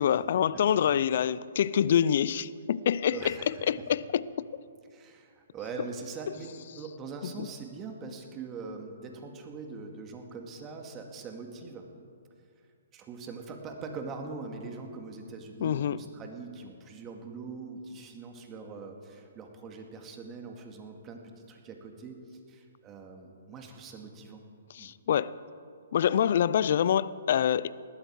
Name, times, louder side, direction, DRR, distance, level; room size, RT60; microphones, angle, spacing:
voice 1, 0.0-3.3 3.7-4.5 7.2-7.5 15.6-16.0 24.7-25.3 25.9-27.7, left 9 dB, 55° left, 0.5 m, -26 dB
voice 2, 3.1-3.6 4.9-11.9 12.9-22.2 22.5-24.4 24.8-24.9, right 4 dB, 20° right, 2.2 m, -42 dB
20.0 x 14.0 x 4.8 m
hypercardioid pair, 135°, 0 cm